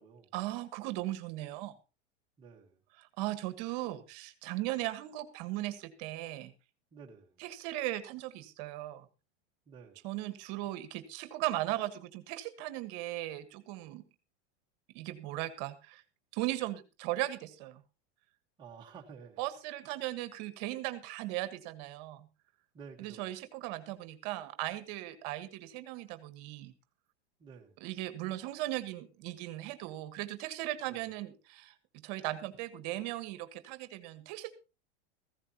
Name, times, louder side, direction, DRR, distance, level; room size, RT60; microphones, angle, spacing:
voice 1, 0.3-1.8 3.2-6.5 7.4-9.1 10.0-14.0 14.9-16.0 16.3-17.8 19.4-22.3 23.0-26.7 27.8-31.7 32.0-34.5, right 16 dB, 35° right, 1.4 m, -37 dB
voice 2, 2.4-2.8 6.9-7.4 9.7-10.1 18.6-19.4 22.7-23.3 27.4-27.8 30.8-31.1, right 6 dB, 15° right, 1.3 m, -52 dB
15.5 x 15.5 x 2.9 m
supercardioid pair, 180°, 34 cm